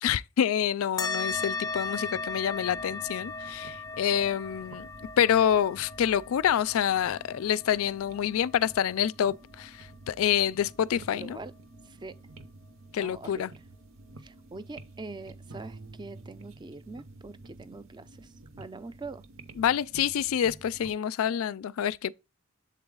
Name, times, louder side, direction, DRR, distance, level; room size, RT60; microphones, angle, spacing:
voice 1, 0.0-4.9 5.2-9.7 10.1-11.4 12.9-13.5 19.6-22.1, left 9 dB, 75° left, 0.3 m, -27 dB
sound 1, 1.0-9.9, left 4 dB, 20° left, 0.6 m, -37 dB
sound 2, 1.2-21.0, right 2 dB, 65° right, 0.8 m, -51 dB
voice 2, 10.9-11.5 11.9-12.2 12.9-13.6 14.2-19.2, right 3 dB, 20° right, 0.4 m, -44 dB
Piano, 15.5-18.2, right 3 dB, 90° right, 1.7 m, -50 dB
7.5 x 3.9 x 3.7 m
head